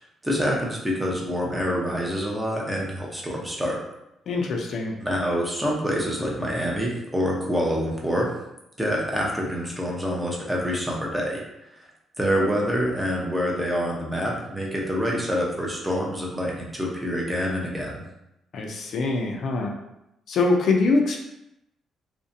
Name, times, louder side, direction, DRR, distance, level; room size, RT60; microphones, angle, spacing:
voice 1, 0.2-3.8 5.0-8.3 8.8-11.4 12.2-18.0, equal, 10° right, -2 dB, 0.6 m, -26 dB
voice 2, 4.3-4.9 18.5-19.7 20.3-21.2, left 3 dB, 65° left, 1 dB, 0.4 m, -23 dB
2.5 x 2.1 x 2.6 m, 0.86 s
cardioid pair, 90°, 0 cm